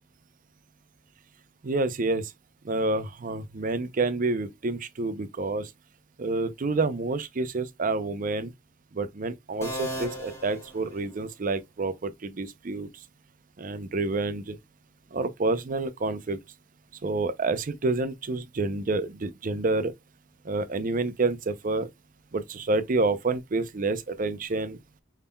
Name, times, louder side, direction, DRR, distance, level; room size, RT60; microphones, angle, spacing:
voice 1, 1.6-2.3 2.6-5.7 6.2-8.5 8.9-12.9 13.6-14.6 15.1-16.4 17.0-19.9 20.4-21.9 22.3-24.8, right 3 dB, 40° right, 0.6 m, -28 dB
sound 1, 9.6-11.5, right 1 dB, 15° left, 1.4 m, -37 dB
5.5 x 3.6 x 2.2 m
head